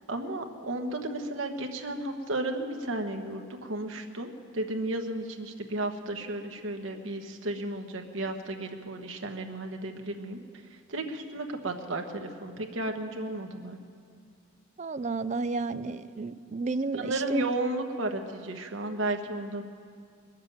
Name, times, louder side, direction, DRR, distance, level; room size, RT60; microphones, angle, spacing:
voice 1, 0.1-10.4 10.9-13.8 16.9-19.6, right 2 dB, 75° right, 3 dB, 1.3 m, -33 dB
voice 2, 14.8-17.4, right 3 dB, 35° right, 12 dB, 0.4 m, -32 dB
21.0 x 7.4 x 9.2 m, 2.3 s
head